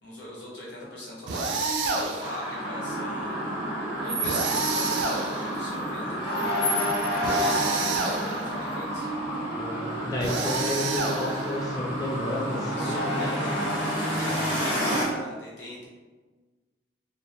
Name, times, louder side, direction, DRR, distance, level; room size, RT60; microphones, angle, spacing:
voice 1, 0.0-3.6 4.0-6.5 7.0-9.4 10.4-10.8 12.8-15.9, equal, 85° left, -5 dB, 0.8 m, -40 dB
sound 1, 1.3-2.4 4.2-5.7 7.2-8.5 10.2-11.6, right 3 dB, 90° right, 0.4 m, -29 dB
sound 2, 2.2-15.0, equal, 15° right, 1.3 m, -29 dB
voice 2, 9.6-13.3 14.3-14.6, left 1 dB, 20° left, -5 dB, 0.3 m, -31 dB
2.4 x 2.1 x 2.8 m, 1.3 s
head